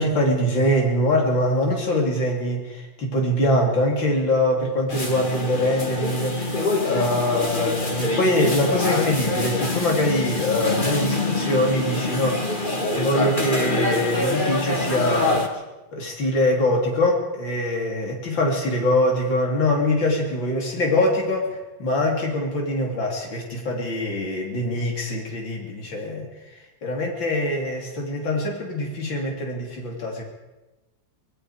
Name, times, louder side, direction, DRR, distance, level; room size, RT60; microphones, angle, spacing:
voice 1, 0.0-15.4 15.9-30.2, left 1 dB, 80° left, 0 dB, 4.1 m, -23 dB
sound 1, 4.9-15.5, left 2 dB, 25° left, 2.3 m, -25 dB
25.5 x 20.5 x 5.0 m, 1.1 s
omnidirectional pair, 2.1 m